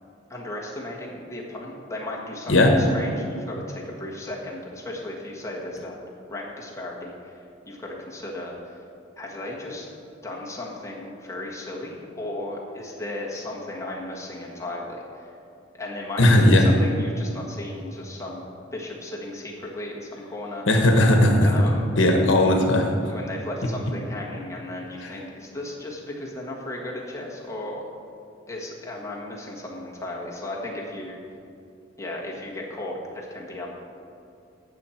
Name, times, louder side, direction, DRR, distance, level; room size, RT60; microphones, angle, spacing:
voice 1, 0.3-6.0 6.3-8.8 9.2-9.9 10.2-15.3 15.7-20.6 21.4-21.8 23.1-27.8 28.5-31.2 32.0-33.7, left 1 dB, 15° left, -4 dB, 1.5 m, -35 dB
voice 2, 16.2-16.7 20.7-21.5 22.0-22.9 25.0-25.1, left 1 dB, 70° left, 3 dB, 1.2 m, -17 dB
16.0 x 6.2 x 4.4 m, 2.5 s
head